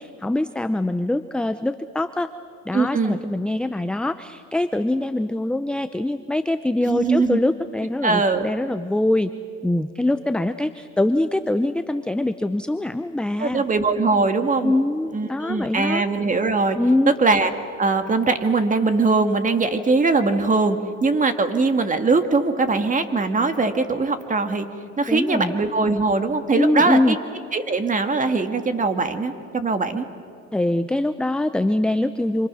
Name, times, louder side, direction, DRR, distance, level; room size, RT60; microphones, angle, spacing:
voice 1, 0.0-2.3 2.7-9.3 9.6-13.6 14.6-16.0 16.7-17.1 25.1-25.5 26.6-27.2 30.5-32.5, left 1 dB, 5° left, 11 dB, 0.5 m, -23 dB
voice 2, 2.7-3.2 6.8-7.4 8.0-8.5 13.4-14.7 15.1-16.8 17.1-17.5 17.8-24.7 25.0-27.2 27.5-30.1, right 3 dB, 20° right, 7 dB, 2.0 m, -21 dB
27.5 x 25.5 x 6.3 m, 2.5 s
supercardioid pair, 100°, 37 cm